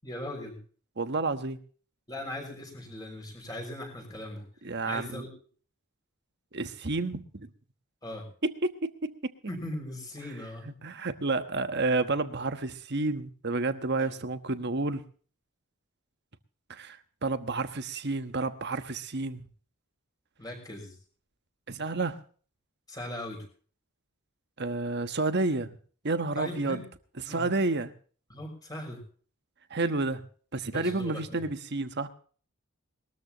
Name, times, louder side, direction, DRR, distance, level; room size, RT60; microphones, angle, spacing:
voice 1, 0.0-0.6 2.1-4.4 4.9-5.3 8.0-8.3 9.5-10.8 14.0-14.1 20.4-21.0 22.9-23.4 26.3-26.9 27.2-27.5 28.3-29.0 30.7-31.4, left 1 dB, 15° left, 1 dB, 6.1 m, -39 dB
voice 2, 1.0-1.6 4.6-5.2 6.5-7.5 8.6-9.3 10.8-15.0 16.7-17.0 17.2-19.4 21.7-22.2 24.6-25.7 26.0-26.8 27.3-27.9 29.7-30.2 30.5-32.1, right 3 dB, 50° right, 10 dB, 1.2 m, -30 dB
21.5 x 13.5 x 3.0 m, 0.43 s
head